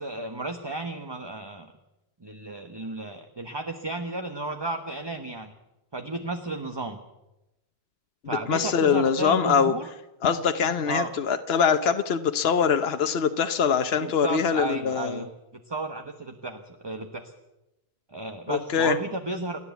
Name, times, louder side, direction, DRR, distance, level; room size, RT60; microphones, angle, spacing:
voice 1, 0.0-1.7 2.2-5.5 5.9-7.0 8.3-9.9 10.9-11.1 14.0-15.3 15.7-17.3 18.1-19.6, right 2 dB, 25° right, 6 dB, 1.1 m, -33 dB
voice 2, 8.5-9.7 10.2-15.2 18.5-19.0, left 6 dB, 70° left, 8 dB, 1.1 m, -23 dB
29.0 x 11.0 x 8.2 m, 0.96 s
omnidirectional pair, 1.1 m